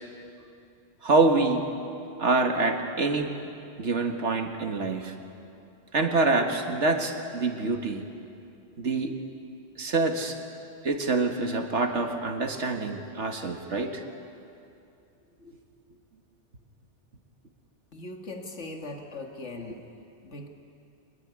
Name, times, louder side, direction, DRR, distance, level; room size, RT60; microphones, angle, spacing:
voice 1, 1.0-1.7 2.2-3.3 3.8-5.2 5.9-8.0 8.8-9.2 9.8-10.4 10.8-14.0, right 3 dB, 80° right, 5 dB, 2.0 m, -26 dB
voice 2, 17.9-19.8 20.2-20.5, left 2 dB, 85° left, 3 dB, 2.2 m, -39 dB
24.5 x 20.5 x 9.9 m, 2.6 s
omnidirectional pair, 1.2 m